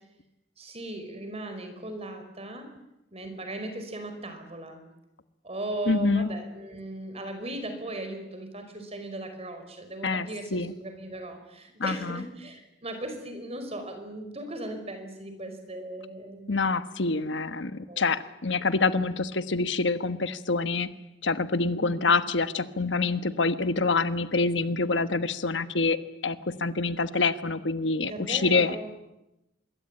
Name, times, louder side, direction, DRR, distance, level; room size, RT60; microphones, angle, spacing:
voice 1, 0.6-2.7 3.1-4.8 5.4-17.2 17.9-18.0 21.8-22.1 28.1-28.9, right 1 dB, 35° right, 6 dB, 5.1 m, -38 dB
voice 2, 5.9-6.3 10.0-10.7 11.8-12.2 16.5-20.9 21.2-26.0 26.2-28.7, left 3 dB, 75° left, 11 dB, 1.3 m, -26 dB
25.5 x 22.5 x 9.0 m, 0.93 s
head